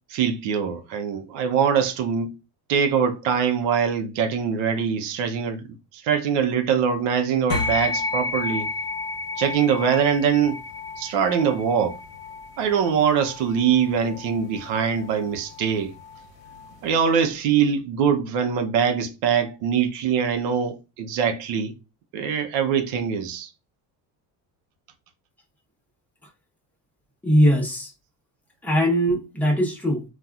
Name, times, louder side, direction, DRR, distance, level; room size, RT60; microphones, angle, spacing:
voice 1, 0.1-2.3 2.7-8.7 9.4-10.6 11.0-12.0 12.6-15.9 16.8-21.7 22.1-23.5, right 7 dB, 85° right, 0.7 m, -23 dB
sound 1, 7.5-17.2, left 3 dB, 60° left, 0.9 m, -32 dB
voice 2, 27.2-27.9 28.6-30.0, equal, 5° left, 0.9 m, -20 dB
4.1 x 2.3 x 2.3 m
cardioid pair, 120°, 41 cm